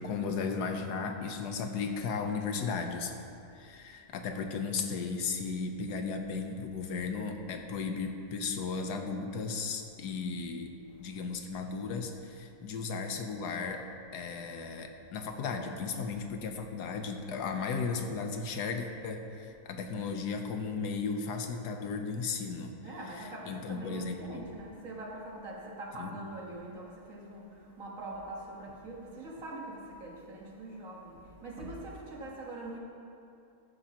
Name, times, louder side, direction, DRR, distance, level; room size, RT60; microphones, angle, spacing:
voice 1, 0.0-3.1 3.5-10.7 11.0-13.8 14.1-24.5 26.0-26.2, left 5 dB, 85° left, 5 dB, 1.4 m, -35 dB
voice 2, 22.8-32.8, right 2 dB, 55° right, -2 dB, 1.8 m, -43 dB
14.5 x 9.5 x 2.9 m, 2.6 s
omnidirectional pair, 1.7 m